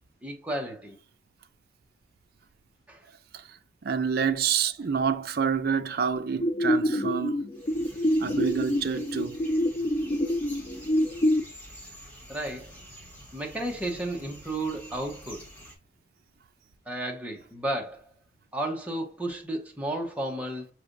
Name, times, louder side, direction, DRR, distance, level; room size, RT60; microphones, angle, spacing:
voice 1, 0.2-1.0 2.9-3.0 12.3-12.7 13.3-15.4 16.9-18.0 18.5-20.7, right 1 dB, 10° right, 0.9 m, -33 dB
voice 2, 3.8-7.5 8.2-9.4, right 6 dB, 60° right, 0.5 m, -28 dB
sound 1, 6.4-11.4, equal, 30° left, 0.4 m, -26 dB
sound 2, 7.5-15.8, equal, 10° left, 1.2 m, -48 dB
5.5 x 3.3 x 2.5 m
head